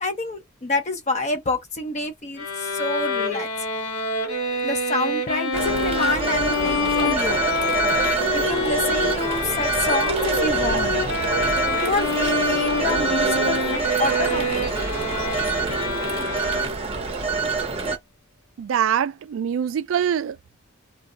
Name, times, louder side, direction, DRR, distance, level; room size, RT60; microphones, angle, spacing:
voice 1, 0.0-3.5 4.6-7.4 8.3-11.0 11.8-14.6, left 2 dB, 35° left, 0.5 m, -27 dB
Bowed string instrument, 2.4-17.0, left 2 dB, 90° left, 0.9 m, -26 dB
Telephone, 5.5-18.0, right 4 dB, 30° right, 0.6 m, -25 dB
voice 2, 18.6-20.6, right 9 dB, 70° right, 0.3 m, -24 dB
2.3 x 2.0 x 3.7 m
head